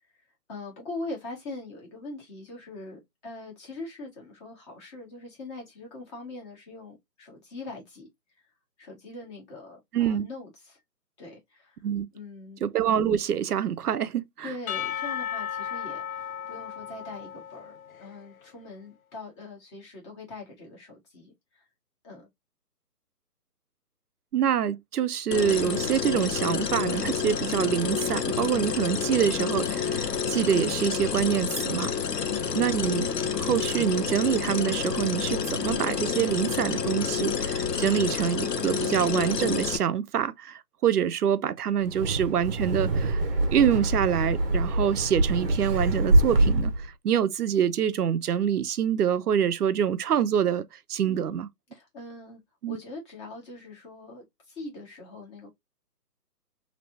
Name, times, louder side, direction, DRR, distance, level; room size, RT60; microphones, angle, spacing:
voice 1, 0.5-8.1 8.8-10.8 11.2-11.8 12.1-12.6 14.4-21.6 22.0-22.3 32.1-32.5 51.0-51.4 51.7-52.4 52.7-55.5, left 2 dB, 20° left, 1.3 m, -42 dB
voice 2, 9.9-10.3 11.8-12.1 12.6-14.5 24.3-31.9 32.6-33.1 33.4-43.2 43.5-46.7 47.0-51.5 52.6-52.8, right 9 dB, 70° right, 0.6 m, -26 dB
Percussion / Church bell, 14.7-18.3, left 9 dB, 60° left, 0.5 m, -35 dB
sound 1, 25.3-39.8, left 7 dB, 80° left, 0.9 m, -29 dB
Wind, 41.8-46.9, right 2 dB, 35° right, 0.8 m, -24 dB
3.2 x 2.9 x 2.6 m
hypercardioid pair, 150°, 48 cm